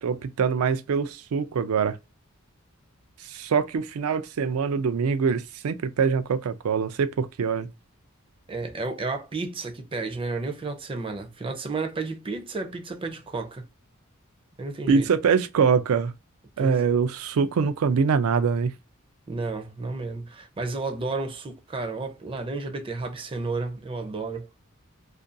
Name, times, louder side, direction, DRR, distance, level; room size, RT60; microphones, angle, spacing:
voice 1, 0.0-2.0 3.3-7.7 14.9-16.1 16.6-18.7, right 6 dB, 85° right, 0.4 m, -24 dB
voice 2, 8.5-13.6 14.6-15.1 16.6-16.9 19.3-24.5, right 3 dB, 25° right, 0.4 m, -32 dB
2.4 x 2.2 x 2.5 m
head